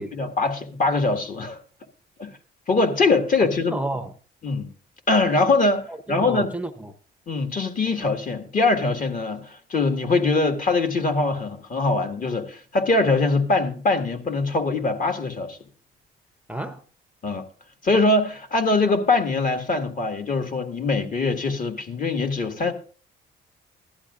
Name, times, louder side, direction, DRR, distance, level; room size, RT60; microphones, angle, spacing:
voice 1, 0.0-1.6 2.2-2.3 2.7-3.8 4.4-4.7 5.1-6.5 7.3-15.6 17.2-17.4 17.8-22.7, left 3 dB, 45° left, 1.8 m, -22 dB
voice 2, 3.4-4.1 5.9-6.9 16.5-16.8, right 1 dB, 5° right, 0.7 m, -31 dB
16.0 x 11.5 x 2.5 m
cardioid pair, 90°, 20 cm